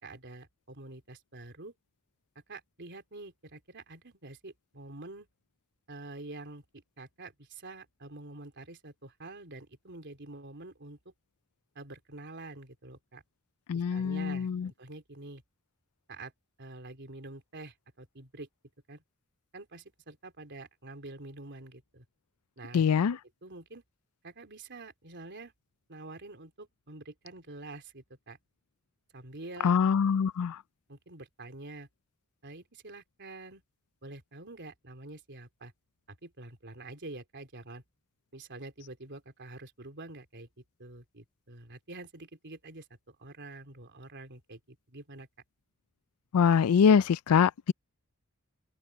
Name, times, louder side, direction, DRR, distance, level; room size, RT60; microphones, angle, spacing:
voice 1, 0.0-1.7 2.5-5.3 5.9-11.0 11.8-13.2 13.7-15.4 16.1-16.3 16.6-18.5 18.9-19.0 19.5-22.1 22.6-22.8 23.4-23.8 24.2-25.5 25.9-28.4 29.1-30.5 30.9-31.9 32.4-33.6 34.0-35.7 36.2-37.8 38.3-40.5 40.8-45.3, right 2 dB, 55° right, 3.7 m, -47 dB
voice 2, 13.7-14.7 22.7-23.2 29.6-30.6 46.3-47.7, left 7 dB, 80° left, 0.4 m, -24 dB
open air
head